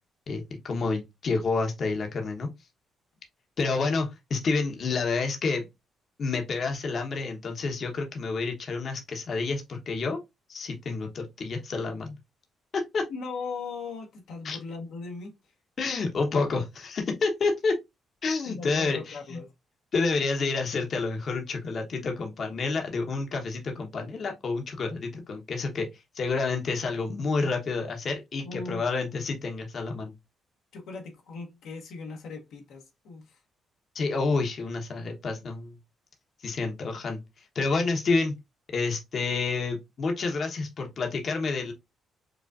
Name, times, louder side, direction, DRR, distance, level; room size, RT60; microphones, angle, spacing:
voice 1, 0.3-2.5 3.6-5.6 6.2-10.2 10.5-12.2 12.7-13.0 14.4-14.6 15.8-17.8 18.2-19.4 19.9-25.9 26.1-30.1 33.9-35.8 36.4-37.2 37.5-38.3 38.7-41.7, left 4 dB, 50° left, 0.9 m, -29 dB
voice 2, 13.0-15.4 18.5-19.5 28.4-28.9 30.7-33.4, left 4 dB, 80° left, 1.0 m, -38 dB
4.9 x 2.4 x 2.4 m
cardioid pair, 90°, 0 cm